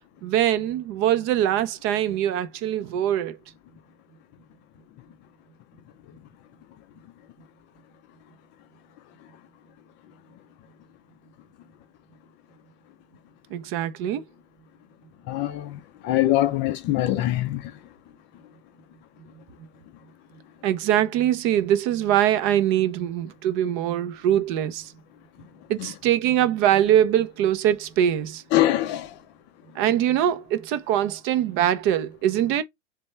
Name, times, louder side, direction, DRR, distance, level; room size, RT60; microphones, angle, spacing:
voice 1, 0.2-3.4 13.5-14.2 20.6-24.9 25.7-28.4 29.8-32.6, right 11 dB, 35° right, 0.5 m, -23 dB
voice 2, 15.3-17.7 28.5-29.1, left 14 dB, 30° left, 0.4 m, -23 dB
3.3 x 3.3 x 3.1 m
hypercardioid pair, 125°, 36 cm